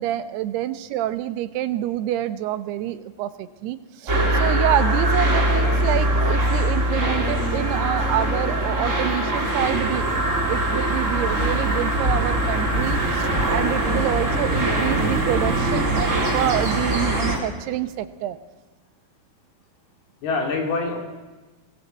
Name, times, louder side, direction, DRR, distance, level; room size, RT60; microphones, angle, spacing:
voice 1, 0.0-10.2 10.5-18.4, right 12 dB, 80° right, 12 dB, 3.0 m, -27 dB
sound 1, 4.1-17.4, right 1 dB, 20° right, 3.1 m, -22 dB
sound 2, 9.4-17.4, right 2 dB, 40° right, 5.2 m, -37 dB
voice 2, 20.2-21.0, left 3 dB, 70° left, 2 dB, 5.4 m, -26 dB
23.0 x 18.0 x 8.1 m, 1.2 s
omnidirectional pair, 4.7 m